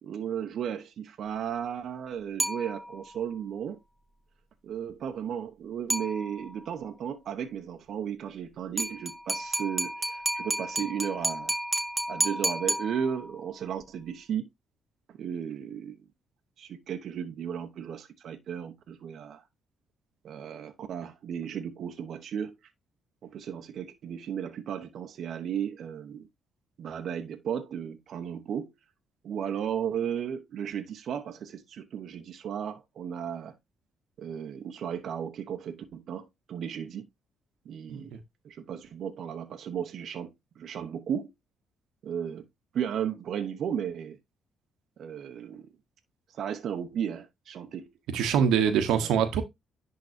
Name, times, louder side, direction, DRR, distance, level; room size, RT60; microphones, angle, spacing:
voice 1, 0.0-3.8 4.6-11.6 12.1-14.5 15.2-16.0 16.6-19.4 20.2-22.5 23.2-26.3 26.8-28.7 29.2-33.6 34.2-37.0 37.6-38.1 38.4-41.3 42.0-42.4 42.7-44.2 45.0-45.7 46.3-47.9 48.7-49.1, right 8 dB, 65° right, 0.9 m, -35 dB
sound 1, 2.4-3.2 5.9-6.7 8.8-13.5, right 1 dB, 10° right, 1.4 m, -31 dB
voice 2, 37.9-38.2 48.1-49.4, right 7 dB, 85° right, 1.1 m, -24 dB
10.5 x 3.8 x 2.7 m
cardioid pair, 90°, 0 cm